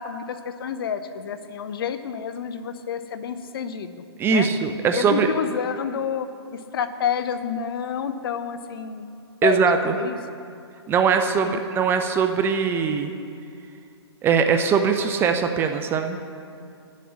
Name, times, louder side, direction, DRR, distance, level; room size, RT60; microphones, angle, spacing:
voice 1, 0.0-4.0 4.3-4.5 4.9-9.0 9.4-9.6 9.9-10.2 11.4-11.6, left 8 dB, 55° left, 11 dB, 0.6 m, -29 dB
voice 2, 4.2-5.3 9.4-10.0 10.9-13.1 14.2-16.2, right 6 dB, 15° right, 6 dB, 0.4 m, -21 dB
10.0 x 7.4 x 7.2 m, 2.4 s
figure-of-eight pair, 125°, 14 cm